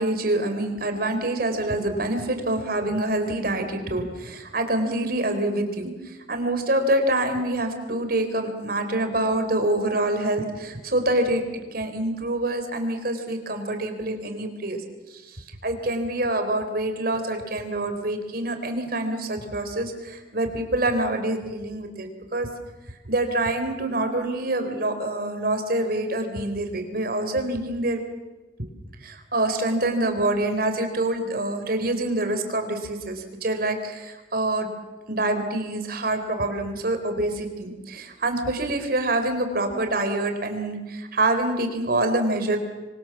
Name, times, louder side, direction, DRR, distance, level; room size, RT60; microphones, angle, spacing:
voice 1, 0.0-11.4 11.7-14.8 15.1-22.5 23.1-28.1 29.0-34.7 35.1-42.6, right 1 dB, 55° right, 7 dB, 3.9 m, -26 dB
27.0 x 23.5 x 7.3 m, 1.2 s
head